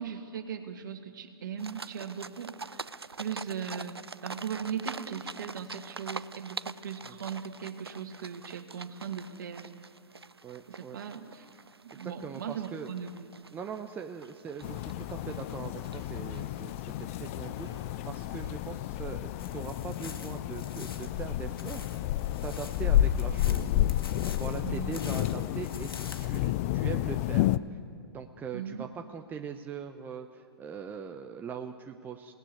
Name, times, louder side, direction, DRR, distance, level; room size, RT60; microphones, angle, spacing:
voice 1, 0.0-2.9 3.2-9.7 10.7-11.4 11.8-13.5 24.6-24.9 28.5-28.9, right 7 dB, 55° right, 7 dB, 2.4 m, -38 dB
sound 1, 1.6-18.7, right 4 dB, 80° right, 0.7 m, -45 dB
voice 2, 10.4-11.0 12.0-12.9 13.5-17.7 18.0-22.1 22.4-23.7 24.2-27.5 28.1-32.3, right 6 dB, 15° right, 5 dB, 1.0 m, -41 dB
sound 2, 14.6-27.6, left 13 dB, 35° left, 0.6 m, -30 dB
sound 3, 19.4-26.5, left 5 dB, 65° left, 2.2 m, -47 dB
28.5 x 19.0 x 9.6 m, 2.3 s
figure-of-eight pair, 115°, 13 cm